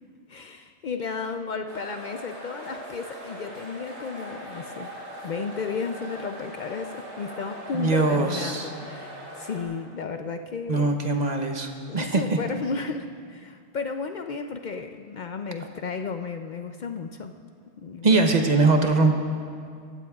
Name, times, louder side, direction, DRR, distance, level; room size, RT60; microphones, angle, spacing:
voice 1, 0.3-4.9 5.2-11.0 11.9-17.3 17.8-18.2, left 5 dB, 60° left, 6 dB, 0.5 m, -33 dB
sound 1, 1.7-9.6, equal, 85° right, 3.4 m, -40 dB
voice 2, 7.7-8.7 10.7-12.4 18.0-19.1, right 3 dB, 40° right, 4 dB, 0.9 m, -22 dB
21.0 x 15.5 x 2.3 m, 2.3 s
omnidirectional pair, 1.2 m